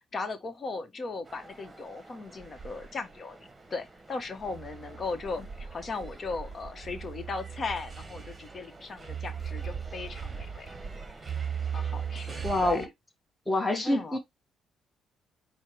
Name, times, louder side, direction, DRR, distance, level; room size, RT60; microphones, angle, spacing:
voice 1, 0.1-3.4 3.7-10.7 11.7-12.9 13.8-14.2, left 3 dB, 40° left, 1.1 m, -37 dB
sound 1, 1.3-12.9, right 7 dB, 25° right, 1.1 m, -39 dB
voice 2, 12.4-12.9 13.5-14.2, left 1 dB, 10° left, 1.2 m, -26 dB
4.5 x 2.2 x 4.6 m
cardioid pair, 90°, 0 cm